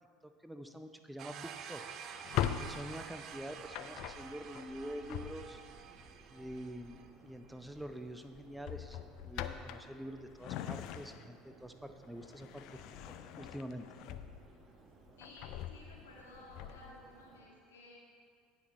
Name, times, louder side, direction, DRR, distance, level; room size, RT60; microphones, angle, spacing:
voice 1, 0.2-1.8 2.6-5.6 6.3-12.8 13.1-13.9, equal, 5° right, 7 dB, 0.6 m, -46 dB
sound 1, 1.2-7.1, right 7 dB, 50° right, 0.6 m, -49 dB
Drawer open or close, 2.1-5.8 7.3-7.6 7.9-8.1 8.6-11.5 11.9-14.7 15.1-17.0, left 11 dB, 55° left, 0.4 m, -41 dB
Subway metro underground, 2.4-17.5, right 3 dB, 35° right, 1.0 m, -61 dB
voice 2, 15.2-18.0, left 2 dB, 80° left, -2 dB, 1.9 m, -55 dB
17.5 x 6.0 x 3.1 m, 2.1 s
hypercardioid pair, 70°, 0 cm